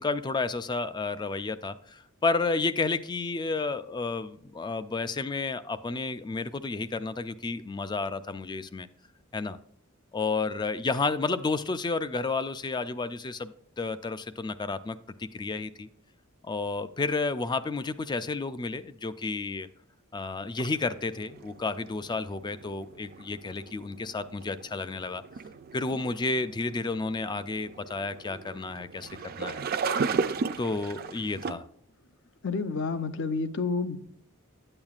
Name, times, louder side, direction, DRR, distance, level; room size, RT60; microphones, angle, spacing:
voice 1, 0.0-8.9 9.3-9.6 10.1-15.9 16.4-19.7 20.1-25.2 25.7-29.1 29.4-29.6 30.6-31.7, left 3 dB, 20° left, 13 dB, 0.3 m, -31 dB
sound 1, 20.6-31.5, right 5 dB, 45° right, 0.4 m, -36 dB
voice 2, 32.4-34.0, left 4 dB, 60° left, 11 dB, 0.6 m, -29 dB
8.8 x 8.6 x 2.4 m, 0.69 s
head